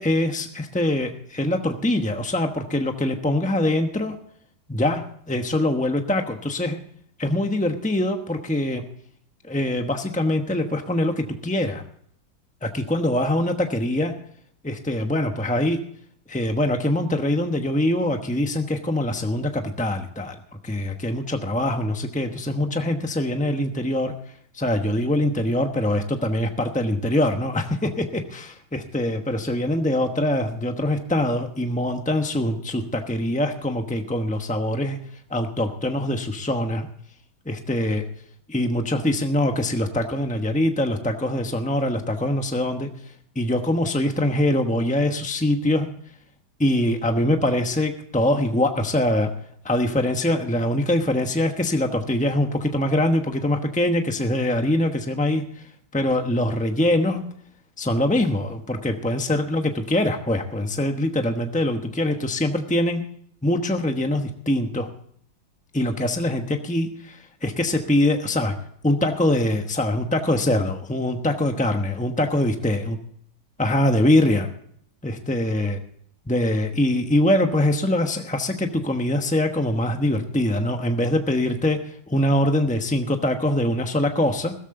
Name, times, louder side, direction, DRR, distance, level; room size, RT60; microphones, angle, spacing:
voice 1, 0.0-4.2 4.7-5.0 5.3-6.8 7.2-8.8 9.5-11.8 12.6-14.1 14.6-15.8 16.3-20.4 20.6-24.1 24.5-35.0 35.3-36.9 37.5-38.0 38.5-42.9 43.3-45.9 46.6-49.3 49.6-57.2 57.8-63.0 63.4-64.9 65.7-68.6 68.8-73.0 73.6-74.5 75.0-75.8 76.3-84.5, left 1 dB, 10° left, 5 dB, 0.5 m, -23 dB
16.0 x 14.0 x 3.7 m, 0.64 s
omnidirectional pair, 2.3 m